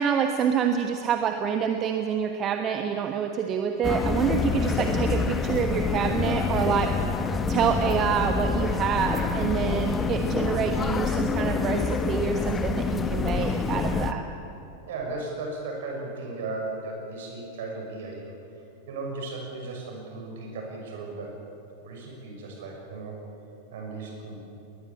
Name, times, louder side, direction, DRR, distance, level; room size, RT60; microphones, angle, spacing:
voice 1, 0.0-14.2, right 7 dB, 30° right, 6 dB, 1.2 m, -27 dB
sound 1, 3.8-14.1, left 4 dB, 20° left, 1.3 m, -26 dB
voice 2, 14.9-18.4 18.9-21.3 21.8-23.2 23.7-24.4, right 3 dB, 55° right, 1 dB, 6.4 m, -36 dB
20.5 x 20.0 x 8.6 m, 2.7 s
figure-of-eight pair, 90°, 0 cm